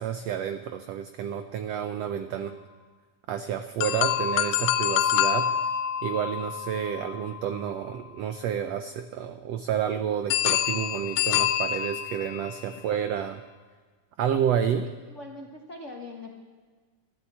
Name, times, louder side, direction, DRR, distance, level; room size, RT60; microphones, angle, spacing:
voice 1, 0.0-2.5 3.3-5.5 6.0-13.4 14.2-14.9, right 8 dB, 90° right, 9 dB, 1.4 m, -30 dB
sound 1, 3.8-7.9 10.3-12.6, left 10 dB, 90° left, 1.4 m, -27 dB
voice 2, 14.8-16.3, left 2 dB, 65° left, 1 dB, 0.7 m, -43 dB
13.5 x 12.5 x 8.5 m, 1.4 s
omnidirectional pair, 3.8 m